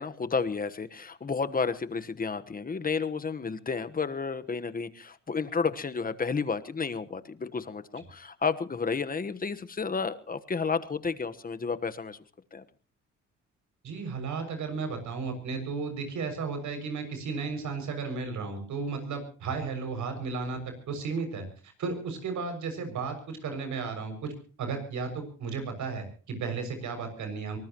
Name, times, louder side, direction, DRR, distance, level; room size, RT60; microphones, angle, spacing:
voice 1, 0.0-12.2 12.5-12.6, left 5 dB, 30° left, 11 dB, 1.3 m, -31 dB
voice 2, 13.8-20.6 20.9-24.3 24.6-27.6, right 4 dB, 75° right, 6 dB, 6.7 m, -34 dB
24.0 x 19.5 x 3.1 m, 0.38 s
cardioid pair, 90°, 30 cm